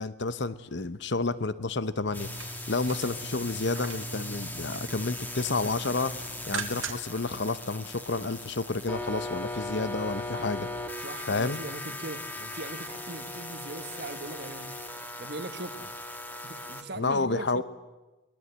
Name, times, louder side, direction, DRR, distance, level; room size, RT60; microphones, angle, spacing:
voice 1, 0.0-6.1 6.5-10.7 11.3-11.6 17.0-17.6, left 3 dB, 60° left, 0.9 m, -30 dB
sound 1, 2.1-16.8, left 1 dB, 10° left, 1.7 m, -38 dB
sound 2, 2.1-4.2 4.5-5.1 5.4-7.2 7.6-7.7, right 6 dB, 75° right, 2.1 m, -41 dB
voice 2, 11.0-14.7 15.2-15.9 16.4-17.6, right 2 dB, 50° right, 1.4 m, -40 dB
22.5 x 20.5 x 8.1 m
head